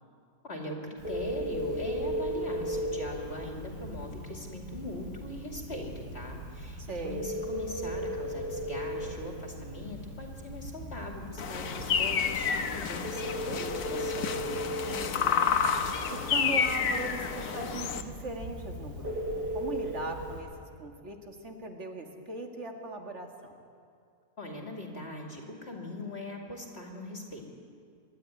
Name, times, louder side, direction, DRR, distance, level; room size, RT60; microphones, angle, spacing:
voice 1, 0.4-14.7 24.4-27.5, left 1 dB, 40° left, 1 dB, 2.8 m, -41 dB
Telephone, 1.0-20.4, equal, 85° right, 7.5 m, -37 dB
voice 2, 6.8-7.3 14.9-15.6 16.1-23.6, right 2 dB, 45° right, 3 dB, 2.2 m, -39 dB
sound 1, 11.4-18.0, left 7 dB, 65° left, 1.5 m, -30 dB
26.0 x 12.5 x 9.8 m, 2.4 s
omnidirectional pair, 1.8 m